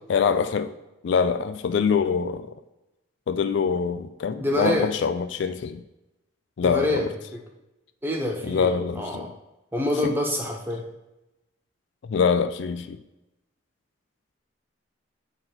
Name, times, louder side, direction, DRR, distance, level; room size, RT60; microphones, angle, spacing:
voice 1, 0.1-0.8 1.0-2.5 3.3-5.8 6.6-7.1 8.4-9.3 12.1-13.0, left 6 dB, 65° left, 10 dB, 0.3 m, -24 dB
voice 2, 4.4-4.9 6.6-7.2 8.0-9.3 9.7-10.8, left 1 dB, 10° right, 1 dB, 0.8 m, -26 dB
8.8 x 3.9 x 2.9 m, 0.97 s
head